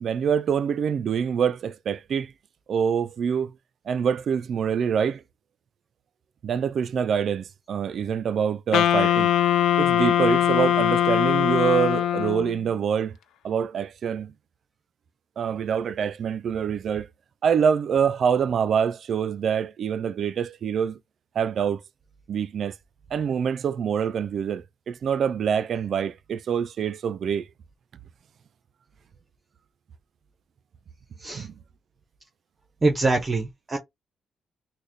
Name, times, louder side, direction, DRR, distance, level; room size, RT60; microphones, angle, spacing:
voice 1, 0.0-2.3 2.7-3.5 3.9-5.2 6.4-9.3 9.8-13.2 13.4-14.3 15.4-17.1 17.4-21.0 21.4-21.8 22.3-22.8 23.1-27.4 31.3-31.5, right 7 dB, 60° right, 0.3 m, -25 dB
Wind instrument woodwind instrument, 8.7-12.6, left 11 dB, 75° left, 0.3 m, -21 dB
voice 2, 32.8-33.8, right 2 dB, 30° right, 0.7 m, -24 dB
3.9 x 2.1 x 3.2 m
cardioid pair, 90°, 0 cm